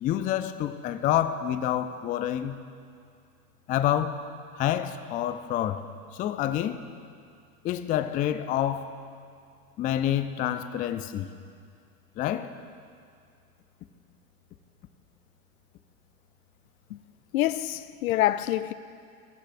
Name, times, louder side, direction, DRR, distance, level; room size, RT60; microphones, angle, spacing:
voice 1, 0.0-2.6 3.7-4.2 4.6-5.9 6.1-6.8 7.6-8.9 9.8-11.3 12.2-12.5, left 11 dB, 20° left, 0.4 m, -28 dB
voice 2, 17.3-18.7, left 14 dB, 70° left, 0.6 m, -26 dB
20.0 x 14.0 x 2.6 m
hypercardioid pair, 95°, 44 cm